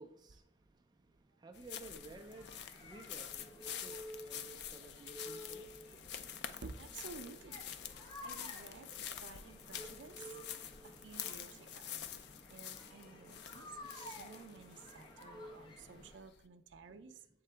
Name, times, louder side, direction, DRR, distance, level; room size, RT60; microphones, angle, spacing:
voice 1, 0.0-6.1 16.9-17.2, right 2 dB, 20° right, 0.4 m, -56 dB
sound 1, 1.5-16.4, left 9 dB, 60° left, 0.4 m, -48 dB
sound 2, 1.9-16.1, left 1 dB, 25° left, 0.9 m, -53 dB
voice 2, 6.6-7.7 8.2-8.9 9.2-10.2 10.8-12.0 12.5-13.7 13.9-17.2, right 4 dB, 80° right, 0.5 m, -53 dB
7.4 x 3.8 x 3.3 m
head